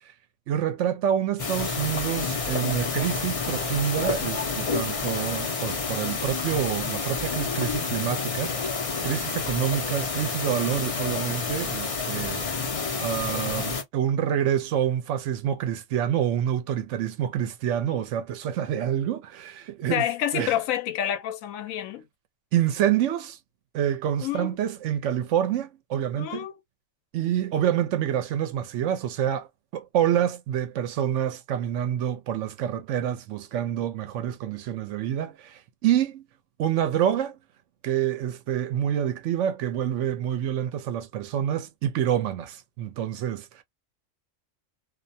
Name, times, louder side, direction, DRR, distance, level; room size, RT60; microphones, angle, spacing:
voice 1, 0.5-12.5 13.0-20.0 20.3-20.5 22.5-23.4 23.7-26.5 27.1-36.2 36.6-37.4 37.8-43.6, right 10 dB, 70° right, 0.9 m, -27 dB
sound 1, 1.4-13.8, left 4 dB, 45° left, 0.4 m, -29 dB
voice 2, 19.9-22.1 24.2-24.6 26.2-26.6, left 11 dB, 85° left, 1.0 m, -28 dB
2.5 x 2.1 x 2.6 m
omnidirectional pair, 1.4 m